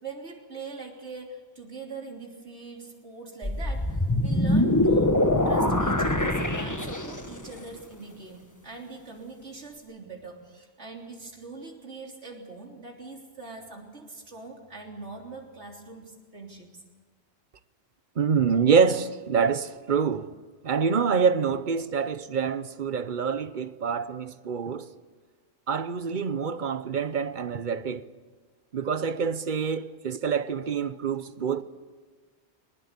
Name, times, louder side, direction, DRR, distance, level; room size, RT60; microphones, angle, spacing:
voice 1, 0.0-5.1 5.5-16.7 21.7-21.8, right 3 dB, 80° right, 3.8 m, -42 dB
sound 1, 3.4-7.4, left 1 dB, 15° left, 1.4 m, -24 dB
voice 2, 18.2-20.3 20.6-24.9 25.7-28.1 28.7-31.6, right 6 dB, 50° right, 0.9 m, -26 dB
21.0 x 20.0 x 8.3 m
omnidirectional pair, 1.1 m